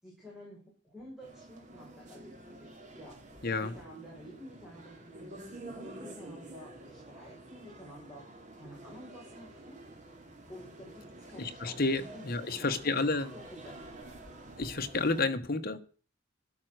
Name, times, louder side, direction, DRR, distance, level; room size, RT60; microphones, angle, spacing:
voice 1, 0.0-3.3 3.6-9.8 10.5-11.8 12.1-12.2 12.5-13.0 13.3-13.8, equal, ahead, 6.4 m, -50 dB
sound 1, 1.2-15.2, right 2 dB, 40° right, 2.7 m, -49 dB
voice 2, 3.4-3.7 11.4-13.3 14.6-15.8, left 3 dB, 50° left, 1.3 m, -30 dB
12.5 x 11.5 x 6.5 m
head